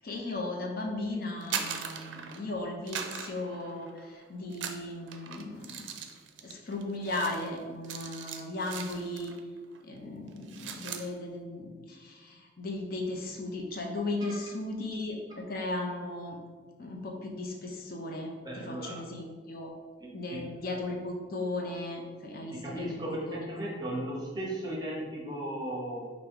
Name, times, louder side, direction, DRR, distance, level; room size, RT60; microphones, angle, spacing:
voice 1, 0.0-5.8 6.4-9.3 9.8-15.2 15.5-16.4 16.8-18.3 18.7-19.7 20.1-23.4, left 2 dB, 50° left, 1 dB, 0.5 m, -36 dB
sound 1, 1.3-2.5 2.9-4.1 4.5-9.4 9.7-10.0 10.3-11.1, right 7 dB, 90° right, 0.4 m, -40 dB
voice 2, 18.4-19.0 20.0-20.4 22.5-26.1, right 1 dB, 25° right, -3 dB, 0.8 m, -36 dB
3.3 x 2.6 x 4.5 m, 1.5 s
head